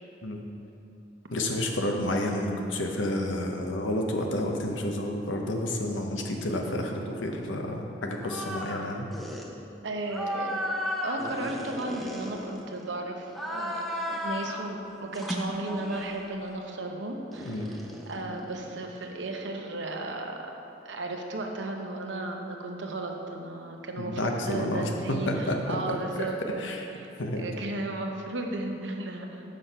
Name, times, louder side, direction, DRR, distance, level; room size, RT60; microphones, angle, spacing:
voice 1, 1.3-9.1 17.5-17.7 24.0-24.8 25.3-25.6 25.9-26.3 26.6-26.8 27.2-27.5, left 1 dB, 85° left, 2 dB, 0.9 m, -30 dB
sound 1, 8.2-8.8 9.1-9.5 10.1-12.9 13.3-14.7 15.1-16.2 17.3-19.1, equal, ahead, 0.7 m, -35 dB
voice 2, 9.8-10.5 11.0-20.5 20.8-26.4 27.0-29.4, right 2 dB, 70° right, 2 dB, 0.9 m, -35 dB
6.3 x 6.3 x 5.5 m, 2.9 s
head